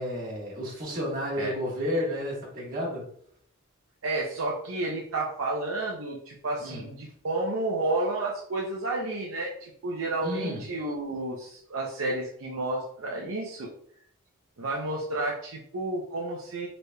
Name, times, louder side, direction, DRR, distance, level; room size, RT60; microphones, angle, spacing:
voice 1, 0.0-3.1 6.6-6.9 10.2-10.7, left 1 dB, 40° right, -5 dB, 1.4 m, -31 dB
voice 2, 4.0-13.7 14.6-16.7, right 2 dB, 75° right, -3 dB, 0.6 m, -31 dB
3.9 x 3.3 x 2.2 m, 0.64 s
head